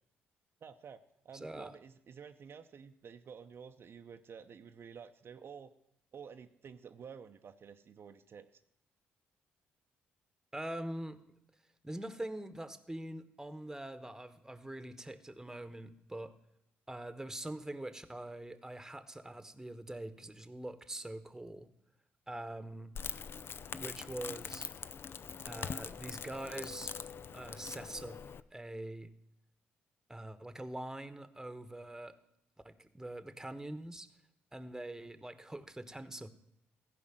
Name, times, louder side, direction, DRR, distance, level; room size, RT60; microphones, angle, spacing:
voice 1, 0.6-5.7 6.1-8.5, right 6 dB, 50° right, 6 dB, 0.7 m, -51 dB
voice 2, 1.3-1.7 10.5-11.2 11.8-16.3 16.9-21.7 22.3-22.9 23.7-24.7 25.4-26.9 27.3-28.2 28.5-29.1 30.1-32.2 32.6-34.1 34.5-36.3, right 1 dB, 10° right, 12 dB, 1.2 m, -44 dB
Crackle, 23.0-28.4, left 6 dB, 50° left, 0.5 m, -43 dB
15.0 x 5.2 x 7.7 m, 0.78 s
hypercardioid pair, 45°, 5 cm